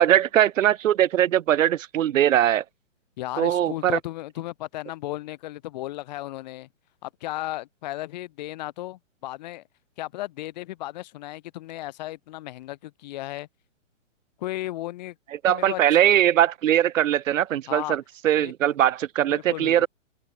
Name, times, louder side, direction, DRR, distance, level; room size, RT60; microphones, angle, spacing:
voice 1, 0.0-2.6 3.4-4.0 15.4-19.9, right 11 dB, 90° right, 0.6 m, -21 dB
voice 2, 3.2-6.7 7.0-9.6 10.0-13.5 14.4-15.2 15.5-15.8 17.7-18.0 18.4-18.5 19.3-19.9, left 16 dB, 35° left, 1.2 m, -35 dB
hypercardioid pair, 155°, 38 cm